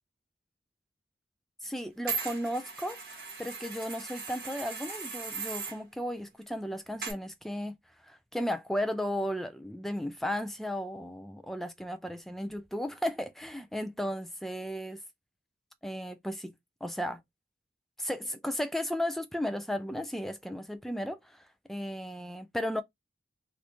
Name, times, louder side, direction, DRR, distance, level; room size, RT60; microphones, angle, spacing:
voice 1, 1.6-7.8 8.1-15.0 15.8-16.5 16.8-17.2 18.0-21.4 21.7-22.8, equal, ahead, 0.3 m, -35 dB
sound 1, 2.1-5.8 7.0-7.1, right 5 dB, 50° right, 1.4 m, -38 dB
3.0 x 2.6 x 3.3 m
head